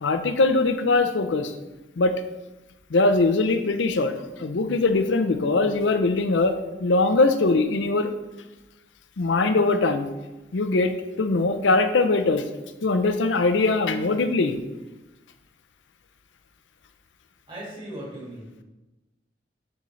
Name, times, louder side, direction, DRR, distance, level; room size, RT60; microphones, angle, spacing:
voice 1, 0.0-1.5 2.0-2.1 2.9-4.1 4.4-6.5 6.8-8.1 9.2-10.1 10.5-12.4 12.8-14.6, left 3 dB, 85° left, 9 dB, 0.6 m, -21 dB
voice 2, 17.5-18.6, right 1 dB, 30° right, -6 dB, 2.0 m, -38 dB
10.5 x 3.9 x 3.2 m, 1.1 s
head